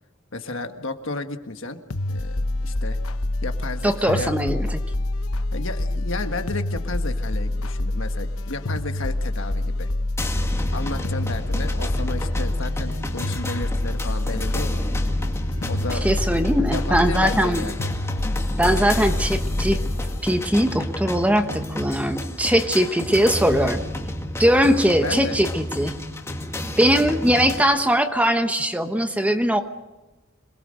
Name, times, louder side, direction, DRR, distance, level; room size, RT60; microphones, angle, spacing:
voice 1, 0.3-1.8 2.1-3.0 3.4-4.3 5.5-9.9 10.7-14.9 15.6-16.1 16.3-17.9 23.5-23.7 25.0-25.4, left 2 dB, 65° left, 7 dB, 1.6 m, -33 dB
sound 1, 1.9-20.2, left 1 dB, 90° left, 1.0 m, -27 dB
voice 2, 3.8-4.7 16.0-17.6 18.6-19.8 20.2-23.8 24.4-25.9 26.8-29.6, equal, 5° right, 7 dB, 1.1 m, -20 dB
sound 2, 10.2-27.6, left 1 dB, 15° left, 2.1 m, -31 dB
26.5 x 21.0 x 6.5 m, 1.1 s
head